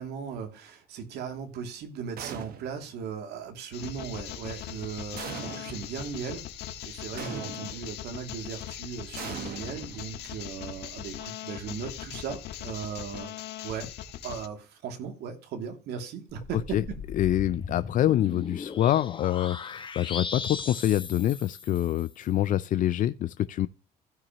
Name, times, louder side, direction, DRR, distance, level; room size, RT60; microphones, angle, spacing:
voice 1, 0.0-6.5 6.8-13.9 14.2-17.0, right 6 dB, 75° right, 2.6 m, -37 dB
sound 1, 2.2-2.9 5.2-6.0 7.2-7.9 9.2-10.4, right 7 dB, 60° right, 1.5 m, -40 dB
sound 2, 3.7-14.5, left 11 dB, 80° left, 1.4 m, -40 dB
sound 3, 16.3-22.1, left 5 dB, 30° left, 1.5 m, -38 dB
voice 2, 17.2-23.7, left 12 dB, 50° left, 0.4 m, -26 dB
16.0 x 6.0 x 3.0 m
cardioid pair, 110°, 17 cm